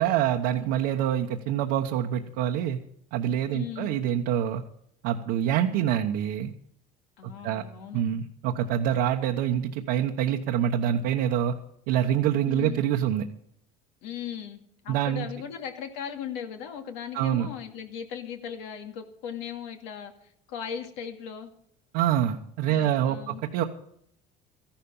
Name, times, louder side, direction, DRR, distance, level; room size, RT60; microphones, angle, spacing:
voice 1, 0.0-2.8 3.1-4.6 5.0-6.5 7.2-7.6 7.9-11.5 11.9-13.2 14.9-15.3 17.1-17.5 21.9-23.6, right 10 dB, 90° right, 1 dB, 1.1 m, -26 dB
voice 2, 3.5-3.9 7.2-8.1 12.4-12.8 14.0-20.1 20.5-21.5 22.7-23.4, left 8 dB, 90° left, 5 dB, 2.4 m, -38 dB
14.5 x 11.5 x 5.5 m, 0.69 s
cardioid pair, 120°, 17 cm